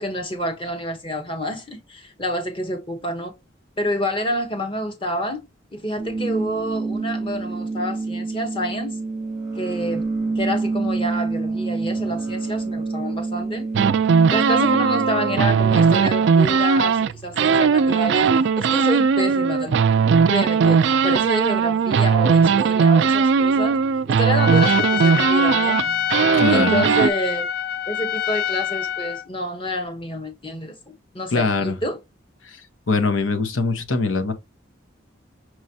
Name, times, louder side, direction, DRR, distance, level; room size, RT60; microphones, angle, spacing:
voice 1, 0.0-3.3 3.8-5.4 5.7-9.0 9.5-10.1 10.4-13.7 14.3-19.8 20.3-23.8 24.1-25.9 26.3-27.5 27.9-32.0, equal, 25° left, 1.1 m, -28 dB
sound 1, 6.0-16.0, right 3 dB, ahead, 0.9 m, -27 dB
sound 2, 13.7-17.1 17.4-27.1, right 6 dB, 65° right, 0.3 m, -18 dB
Trumpet, 24.3-29.2, left 9 dB, 50° left, 0.4 m, -25 dB
voice 2, 26.3-26.8 31.3-31.8 32.4-32.6 32.9-34.3, left 3 dB, 85° left, 0.9 m, -22 dB
6.2 x 3.1 x 2.7 m
head